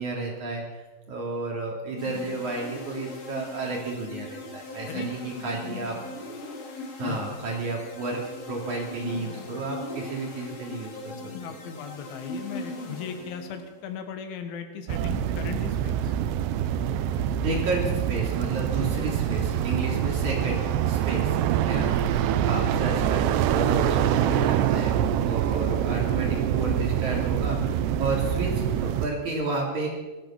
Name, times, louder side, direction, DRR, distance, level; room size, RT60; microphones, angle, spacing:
voice 1, 0.0-6.0 7.0-8.2 8.5-11.2 17.4-28.5 28.8-29.9, right 3 dB, 45° right, -1 dB, 3.7 m, -32 dB
sound 1, 2.0-13.8, left 2 dB, 45° left, 2.2 m, -39 dB
voice 2, 11.3-16.1, left 7 dB, 85° left, 7 dB, 3.9 m, -37 dB
sound 2, 14.9-29.1, right 10 dB, 80° right, 2.7 m, -25 dB
17.5 x 14.0 x 5.9 m, 1.2 s
omnidirectional pair, 5.3 m